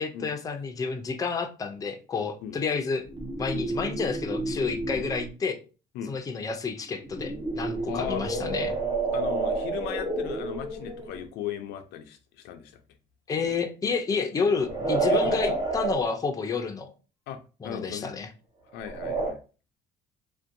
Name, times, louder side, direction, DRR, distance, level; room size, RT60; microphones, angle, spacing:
voice 1, 0.0-3.0 3.4-5.6 6.1-8.7 13.3-16.9 17.6-18.3, left 5 dB, 20° left, 0.4 m, -30 dB
sound 1, 3.0-5.3 7.0-11.2 14.5-16.1 18.8-19.3, right 3 dB, 25° right, 0.6 m, -30 dB
voice 2, 7.8-8.2 9.1-12.7 15.1-15.6 17.3-18.1 18.7-19.4, left 9 dB, 85° left, 0.4 m, -36 dB
2.6 x 2.1 x 2.5 m
cardioid pair, 110°, 17 cm